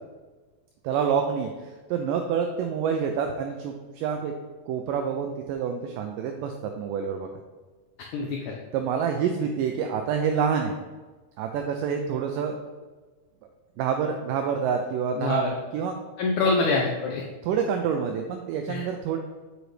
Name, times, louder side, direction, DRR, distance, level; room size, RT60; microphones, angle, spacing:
voice 1, 0.8-4.3 4.7-7.3 8.7-10.7 11.4-12.6 13.8-16.0 17.4-19.2, right 7 dB, 80° right, 4 dB, 2.0 m, -27 dB
voice 2, 8.1-8.6 15.2-15.5 16.2-17.2 18.7-18.8, left 3 dB, 80° left, 0 dB, 1.8 m, -25 dB
7.8 x 6.2 x 3.3 m, 1.3 s
omnidirectional pair, 4.2 m